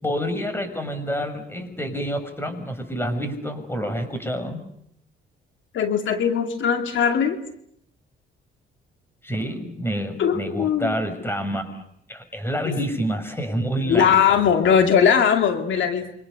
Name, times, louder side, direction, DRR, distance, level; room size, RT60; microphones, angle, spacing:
voice 1, 0.0-4.6 9.2-11.8 12.1-14.2, equal, 10° left, 9 dB, 6.5 m, -28 dB
voice 2, 5.7-7.4 10.2-10.9 12.7-12.8 13.9-16.1, left 7 dB, 75° left, 5 dB, 2.4 m, -20 dB
29.5 x 25.5 x 7.0 m, 0.71 s
cardioid pair, 90°, 20 cm